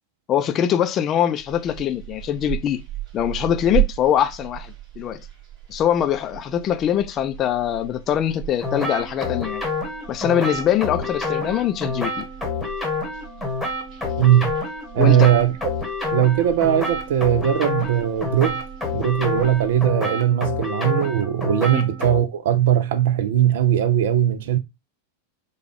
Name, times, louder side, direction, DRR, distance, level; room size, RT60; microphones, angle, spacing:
voice 1, 0.3-2.8 3.1-5.2 5.7-9.6 10.1-12.3 15.0-15.4 21.7-21.9, left 10 dB, 30° left, 0.4 m, -23 dB
sound 1, 1.4-19.9, right 15 dB, 35° right, 1.7 m, -35 dB
sound 2, 8.6-22.2, left 3 dB, ahead, 1.2 m, -28 dB
voice 2, 14.2-14.5 14.9-15.5 16.1-18.6 18.9-24.6, right 11 dB, 55° right, 0.4 m, -19 dB
4.8 x 2.3 x 3.4 m
figure-of-eight pair, 90°, 0 cm